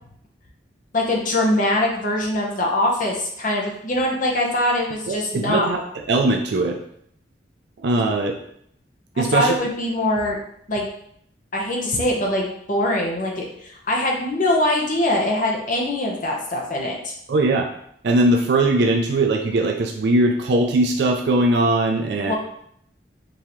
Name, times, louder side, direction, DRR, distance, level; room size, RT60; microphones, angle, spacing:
voice 1, 0.9-5.7 9.1-10.4 10.7-10.9 11.5-17.1 22.1-22.3, left 1 dB, 45° left, -1 dB, 0.9 m, -22 dB
voice 2, 5.1-5.8 6.1-6.8 7.8-8.3 9.2-9.5 17.3-17.7 18.0-22.3, right 2 dB, 65° right, 4 dB, 0.4 m, -20 dB
5.3 x 2.8 x 3.1 m, 0.70 s
head